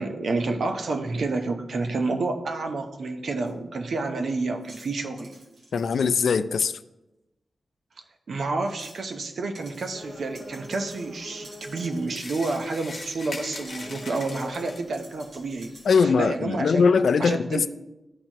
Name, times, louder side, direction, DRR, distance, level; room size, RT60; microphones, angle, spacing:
voice 1, 0.0-5.3 8.3-16.9 17.2-17.7, right 3 dB, 65° right, 0.8 m, -29 dB
sound 1, 3.5-3.6 4.6-6.0 6.6-6.7 8.7-9.3 9.6-9.9 10.4-12.8 13.7-16.0, right 1 dB, 90° right, 2.5 m, -49 dB
voice 2, 5.7-6.7 15.9-17.7, left 5 dB, 80° left, 0.3 m, -21 dB
sound 2, 9.9-16.0, equal, 5° left, 1.1 m, -45 dB
sound 3, 12.1-15.0, left 3 dB, 50° left, 1.1 m, -40 dB
12.5 x 4.5 x 2.9 m
wide cardioid pair, 165°, 0 cm